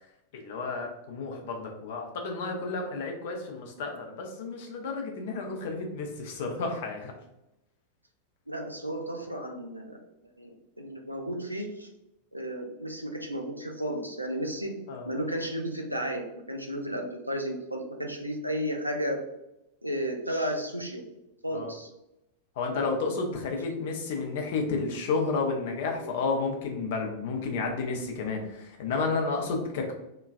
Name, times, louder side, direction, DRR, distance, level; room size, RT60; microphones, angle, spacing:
voice 1, 0.3-7.1 14.9-15.1 21.5-21.7 22.6-29.9, left 4 dB, 55° left, 2 dB, 0.6 m, -31 dB
voice 2, 8.5-10.0 10.4-10.5 10.8-11.9 12.3-14.8 15.0-19.2 19.8-21.1 21.4-21.9 23.7-23.8 26.0-26.1, equal, 90° right, 2 dB, 0.4 m, -33 dB
2.9 x 2.3 x 2.4 m, 0.88 s
figure-of-eight pair, 90°, 0 cm